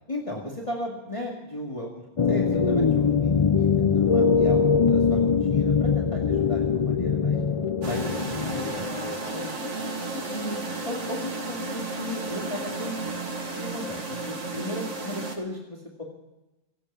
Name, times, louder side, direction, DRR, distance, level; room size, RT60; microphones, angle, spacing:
voice 1, 0.1-2.0 2.3-7.4 7.8-9.5 10.3-10.6 10.9-13.2 13.5-14.0 14.3-16.0, left 1 dB, 25° left, -2 dB, 2.3 m, -36 dB
sound 1, 2.2-9.3, left 5 dB, 50° left, 0.4 m, -22 dB
sound 2, 7.8-15.4, right 3 dB, 65° right, 2.5 m, -33 dB
27.0 x 9.0 x 5.6 m, 1.0 s
omnidirectional pair, 1.3 m